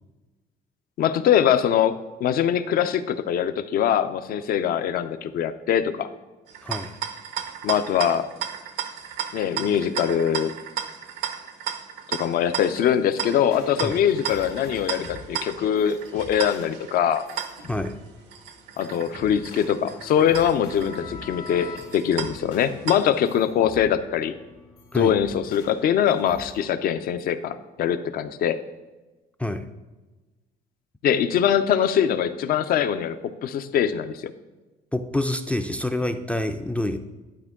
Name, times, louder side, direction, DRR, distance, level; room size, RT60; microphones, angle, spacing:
voice 1, 1.0-6.1 7.6-8.3 9.3-10.5 12.1-17.2 18.8-24.3 24.9-28.6 31.0-34.3, left 9 dB, 60° left, 11 dB, 0.5 m, -23 dB
sound 1, 6.5-23.4, right 9 dB, 85° right, 0.7 m, -35 dB
voice 2, 6.6-7.0 13.8-14.0 17.7-18.0 24.9-25.2 29.4-29.7 34.9-37.0, left 1 dB, 5° left, 8 dB, 0.3 m, -27 dB
sound 2, 13.4-26.6, left 4 dB, 85° left, 2.0 m, -44 dB
11.0 x 4.5 x 3.6 m, 1.2 s
cardioid pair, 110°, 17 cm